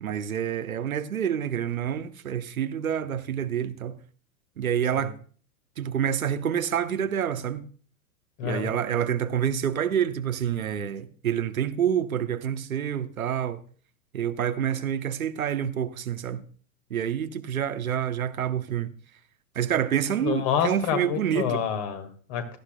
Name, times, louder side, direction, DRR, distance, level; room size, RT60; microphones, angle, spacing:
voice 1, 0.0-4.0 4.6-5.1 5.8-7.6 8.4-13.6 14.1-16.4 16.9-18.9 19.5-21.6, right 9 dB, 75° right, 0.9 m, -27 dB
voice 2, 8.4-8.7 20.2-22.6, left 8 dB, 40° left, 1.9 m, -28 dB
17.0 x 13.0 x 2.2 m
figure-of-eight pair, 100°, 43 cm